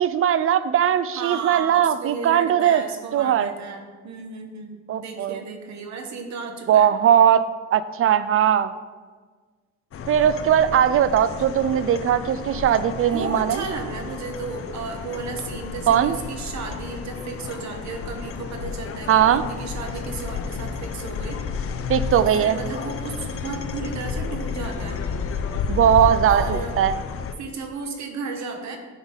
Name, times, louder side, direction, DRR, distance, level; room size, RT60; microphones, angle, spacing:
voice 1, 0.0-2.8 3.1-3.5 4.9-5.4 6.7-7.4 7.7-8.7 10.1-13.6 15.9-16.1 19.1-19.4 21.9-22.6 25.7-26.9, right 9 dB, 50° right, 14 dB, 0.4 m, -19 dB
voice 2, 1.1-6.9 13.0-21.4 22.1-25.0 26.3-26.7 27.4-28.8, right 4 dB, 65° right, 4 dB, 1.1 m, -34 dB
sound 1, 9.9-27.3, left 5 dB, 50° left, 0.5 m, -31 dB
9.8 x 3.5 x 4.0 m, 1.5 s
cardioid pair, 90°, 30 cm